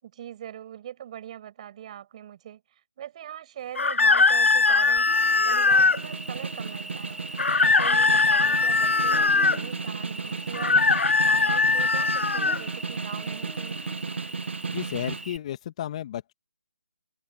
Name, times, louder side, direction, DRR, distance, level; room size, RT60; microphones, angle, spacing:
voice 1, 0.0-10.9 11.2-13.9, right 11 dB, 30° right, 7.4 m, -41 dB
sound 1, 3.8-6.0 7.4-9.6 10.5-12.6, left 4 dB, 75° left, 0.7 m, -21 dB
Cricket, 5.0-15.4, right 1 dB, ahead, 0.4 m, -41 dB
Snare drum, 5.5-15.3, right 5 dB, 65° right, 1.4 m, -34 dB
voice 2, 14.7-16.3, left 11 dB, 30° left, 2.4 m, -33 dB
figure-of-eight pair, 155°, 7 cm